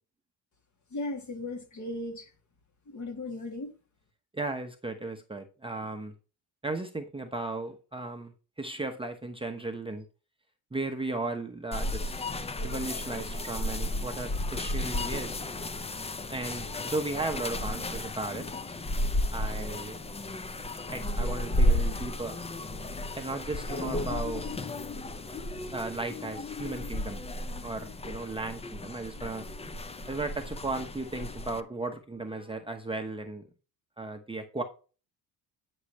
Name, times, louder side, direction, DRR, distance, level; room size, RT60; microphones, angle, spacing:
voice 1, 0.9-2.3 2.9-3.7, left 2 dB, 40° left, 2.4 m, -36 dB
voice 2, 4.3-6.1 6.6-10.1 10.7-12.3 12.6-15.4 16.3-18.5 19.3-20.0 20.9-22.4 23.1-24.5 25.7-27.2 27.6-29.5 30.1-33.5 34.0-34.6, right 2 dB, 10° right, 0.9 m, -35 dB
sound 1, 11.7-31.6, left 1 dB, 15° left, 0.5 m, -33 dB
9.7 x 6.4 x 3.1 m
cardioid pair, 110°, 46 cm